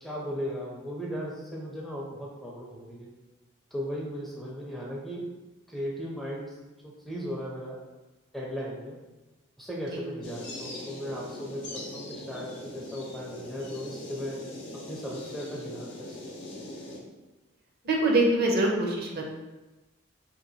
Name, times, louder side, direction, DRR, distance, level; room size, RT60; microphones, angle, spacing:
voice 1, 0.0-3.1 3.7-5.2 5.7-6.5 6.8-7.8 8.3-9.0 9.6-14.4 14.7-16.2, equal, ahead, -4 dB, 0.4 m, -37 dB
sound 1, 10.2-17.0, left 1 dB, 55° left, 0.7 m, -41 dB
voice 2, 17.8-19.3, right 2 dB, 50° right, 0 dB, 0.6 m, -24 dB
2.8 x 2.6 x 4.0 m, 1.1 s
head